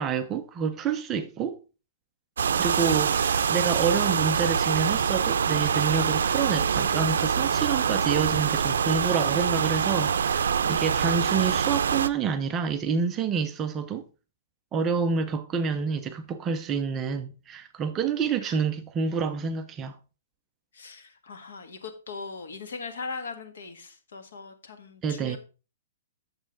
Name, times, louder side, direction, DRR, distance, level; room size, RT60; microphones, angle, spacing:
voice 1, 0.0-1.6 2.5-14.0 14.7-20.0 25.0-25.4, right 6 dB, 15° right, 0.4 m, -28 dB
sound 1, 2.4-12.1, right 7 dB, 85° right, 0.4 m, -25 dB
voice 2, 20.7-25.4, left 4 dB, 70° left, 1.6 m, -40 dB
7.9 x 6.9 x 3.7 m
hypercardioid pair, 180°, 0 cm